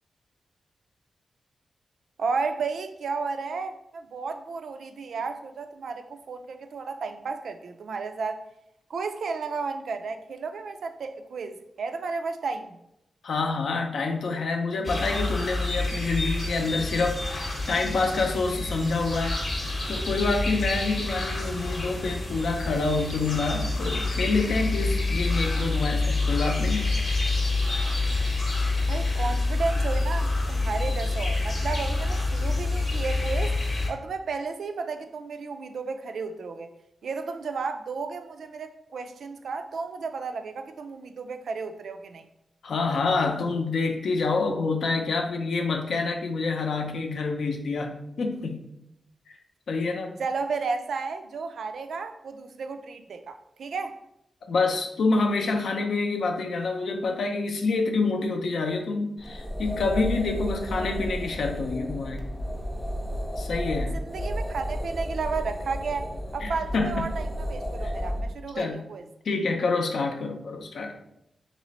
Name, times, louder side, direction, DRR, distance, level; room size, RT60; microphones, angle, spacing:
voice 1, 2.2-8.4 8.9-12.8 28.9-33.5 33.9-36.7 37.0-42.2 50.2-54.0 63.9-69.0, right 4 dB, 75° right, 8 dB, 0.3 m, -33 dB
voice 2, 13.2-19.4 19.9-26.9 42.6-48.6 49.3-49.4 49.7-50.2 54.5-62.2 63.4-64.0 66.4-67.1 67.8-67.9 68.6-68.8 69.2-71.0, left 3 dB, 75° left, 4 dB, 0.5 m, -27 dB
sound 1, 14.8-33.9, left 2 dB, 40° left, 0.8 m, -27 dB
sound 2, 59.2-68.3, equal, 10° left, 0.5 m, -32 dB
3.2 x 3.0 x 4.0 m, 0.81 s
wide cardioid pair, 175°, 0 cm